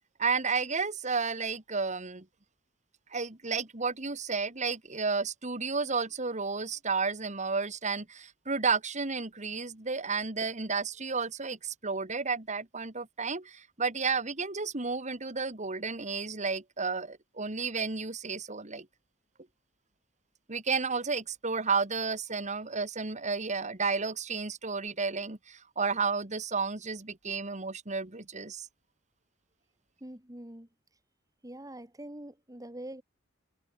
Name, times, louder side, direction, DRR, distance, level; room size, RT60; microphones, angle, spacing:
voice 1, 0.2-2.2 3.1-18.9 20.5-28.7, right 4 dB, 35° right, 2.2 m, -32 dB
voice 2, 30.0-30.7 31.4-33.0, right 1 dB, 15° right, 2.8 m, -44 dB
head